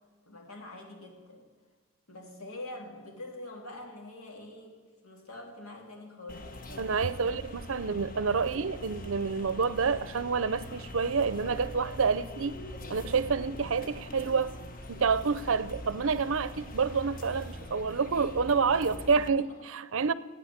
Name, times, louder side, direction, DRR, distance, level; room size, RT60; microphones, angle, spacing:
voice 1, 0.3-1.5 2.1-6.5 7.1-7.4 7.7-7.9 19.3-19.6, left 2 dB, 80° left, 3.3 m, -45 dB
sound 1, 6.3-19.3, equal, 40° left, 1.1 m, -43 dB
voice 2, 6.8-12.6 12.9-14.5 14.9-20.1, right 5 dB, 65° right, 0.6 m, -28 dB
15.5 x 8.9 x 9.6 m
head